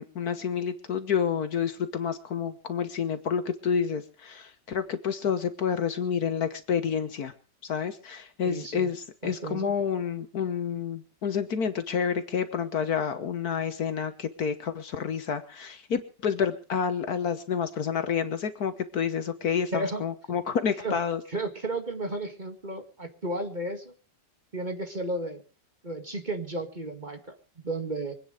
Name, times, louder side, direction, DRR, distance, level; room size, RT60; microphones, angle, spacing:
voice 1, 0.0-7.3 7.6-21.2, left 7 dB, 60° left, 10 dB, 1.6 m, -29 dB
voice 2, 8.4-8.9 9.2-9.7 19.7-20.0 20.8-21.0 21.3-23.9 24.5-25.4 25.8-28.1, right 2 dB, 25° right, 6 dB, 2.0 m, -33 dB
24.5 x 9.5 x 5.0 m, 0.37 s
omnidirectional pair, 1.9 m